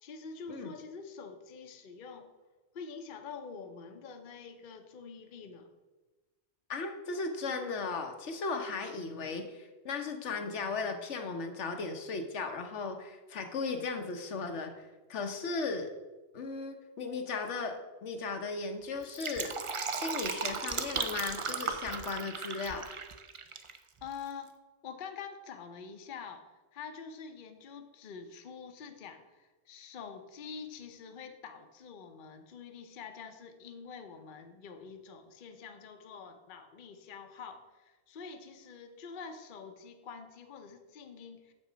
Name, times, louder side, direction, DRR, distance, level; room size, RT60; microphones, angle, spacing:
voice 1, 0.0-2.3 2.7-5.7 24.0-24.5 24.8-41.5, left 5 dB, 50° left, 6 dB, 0.8 m, -46 dB
voice 2, 6.7-15.9 16.3-19.5 19.9-22.9, left 4 dB, 80° left, 5 dB, 1.2 m, -36 dB
Fill (with liquid), 19.0-23.8 24.0-24.1, right 5 dB, 50° right, 0.4 m, -36 dB
7.1 x 5.7 x 5.0 m, 1.2 s
omnidirectional pair, 1.2 m